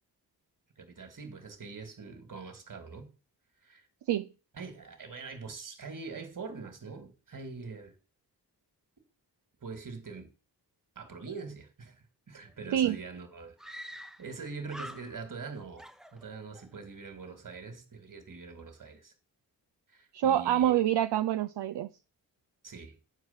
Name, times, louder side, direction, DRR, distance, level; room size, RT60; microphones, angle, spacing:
voice 1, 0.8-3.1 3.6-3.9 4.5-7.9 9.6-10.3 11.0-15.8 16.1-19.1 19.9-20.8 22.6-22.9, right 4 dB, 50° right, 2.3 m, -43 dB
Screaming, 12.5-12.6 12.8-12.9 13.6-14.4 14.7-15.5 15.8-16.7, equal, ahead, 0.7 m, -46 dB
voice 2, 20.1-21.9, right 11 dB, 80° right, 0.6 m, -26 dB
9.3 x 4.8 x 7.3 m
wide cardioid pair, 95°, 40 cm